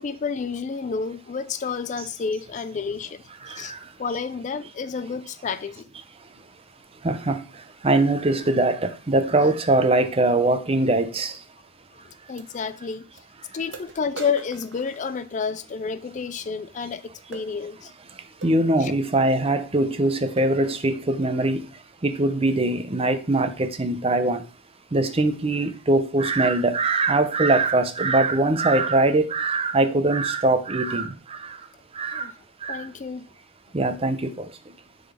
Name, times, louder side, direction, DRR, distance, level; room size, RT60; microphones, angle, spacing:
voice 1, 0.0-3.7 4.0-5.8 12.0-13.0 13.5-17.9 18.8-18.9 32.1-32.3 32.7-33.3, left 5 dB, 40° left, 0.4 m, -30 dB
voice 2, 3.4-4.2 5.1-5.2 5.7-5.8 6.1-6.4 6.9-11.4 12.0-12.1 12.8-12.9 13.4-13.6 16.8-16.9 17.6-17.7 18.1-24.5 24.9-31.7 31.9-32.3 32.6-32.9 33.7-34.8, right 2 dB, 30° right, 0.7 m, -23 dB
sound 1, 11.3-11.4 12.4-12.5 13.2-13.3 13.7-15.7 17.3-17.5 18.4-18.6 19.4-19.6 19.9-20.1 20.4-20.7 21.2-21.5, right 4 dB, 70° right, 0.8 m, -43 dB
10.0 x 3.9 x 3.6 m
head